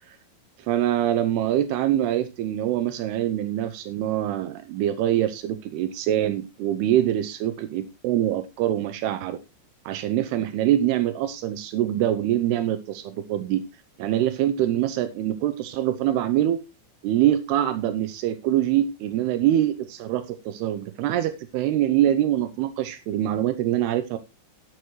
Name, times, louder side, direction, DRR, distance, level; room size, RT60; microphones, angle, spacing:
voice 1, 0.7-9.4 9.9-13.6 14.0-16.6 17.0-24.2, right 12 dB, 85° right, 9 dB, 2.3 m, -24 dB
13.0 x 11.0 x 3.1 m, 0.25 s
omnidirectional pair, 5.6 m